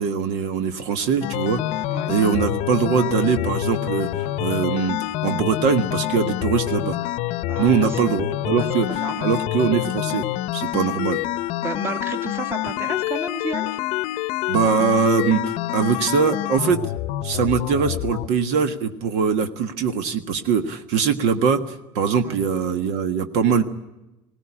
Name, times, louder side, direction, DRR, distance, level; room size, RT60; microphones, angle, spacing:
voice 1, 0.0-1.6 2.1-7.0 7.6-10.3 10.5-11.2 14.5-16.8 17.2-23.6, right 6 dB, 65° right, 9 dB, 1.6 m, -22 dB
sound 1, 1.2-18.3, left 15 dB, 60° left, 0.7 m, -27 dB
voice 2, 7.4-8.0 8.6-9.4 11.6-13.8 22.2-22.4, right 3 dB, 20° right, 8 dB, 1.9 m, -32 dB
21.5 x 18.0 x 9.9 m, 0.97 s
cardioid pair, 170°, 12 cm